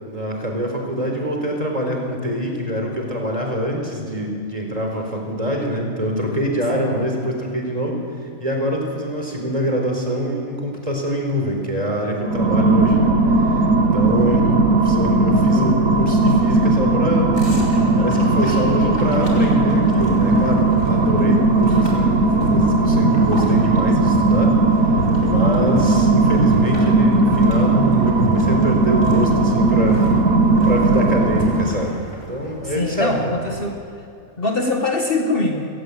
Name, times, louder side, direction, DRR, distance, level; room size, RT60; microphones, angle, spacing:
voice 1, 0.1-8.0 8.4-13.6 13.9-17.4 18.0-24.6 24.8-25.0 25.3-30.1 30.6-31.9 32.3-33.3, equal, 25° right, 1 dB, 4.5 m, -24 dB
sound 1, 12.2-31.9, right 2 dB, 80° right, 1.8 m, -17 dB
voice 2, 14.3-14.6 31.4-31.6 32.6-33.8 34.4-35.7, left 2 dB, 40° left, 2 dB, 1.9 m, -23 dB
sound 2, 17.3-33.7, right 1 dB, 65° left, 4.9 m, -32 dB
30.0 x 17.0 x 8.7 m, 2.4 s
omnidirectional pair, 1.5 m